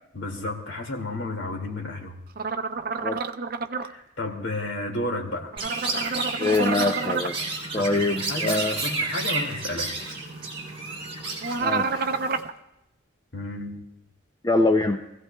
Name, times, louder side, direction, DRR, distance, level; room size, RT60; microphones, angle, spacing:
voice 1, 0.1-2.2 3.8-5.5 7.8-9.9 13.3-13.9, left 2 dB, 70° left, 1 dB, 2.3 m, -32 dB
sound 1, 2.4-3.9 5.5-7.3 11.4-12.5, right 4 dB, 50° right, 0.6 m, -28 dB
Chirp tweet, 5.6-12.4, right 3 dB, 30° right, 3.1 m, -31 dB
voice 2, 6.4-8.8 11.6-12.1 14.4-15.0, left 2 dB, 20° left, 4 dB, 0.5 m, -24 dB
25.0 x 16.0 x 2.3 m, 0.89 s
head